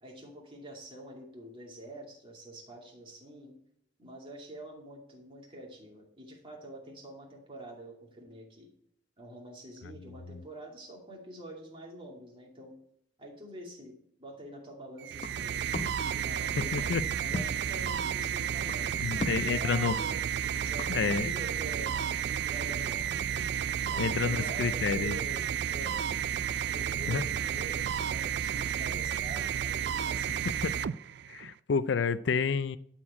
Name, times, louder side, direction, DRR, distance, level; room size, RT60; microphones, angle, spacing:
voice 1, 0.0-3.6 4.0-8.7 9.2-12.7 13.2-15.6 16.1-26.3 26.6-30.6, right 1 dB, 30° right, 2.4 m, -46 dB
sound 1, 15.0-31.5, right 9 dB, 60° right, 0.3 m, -32 dB
sound 2, 15.2-21.1, left 2 dB, 35° left, 0.8 m, -41 dB
voice 2, 16.6-17.0 19.0-19.9 20.9-21.4 24.0-25.2 27.1-27.2 30.6-30.7 31.3-32.8, left 5 dB, 70° left, 0.4 m, -29 dB
13.0 x 4.5 x 8.5 m
head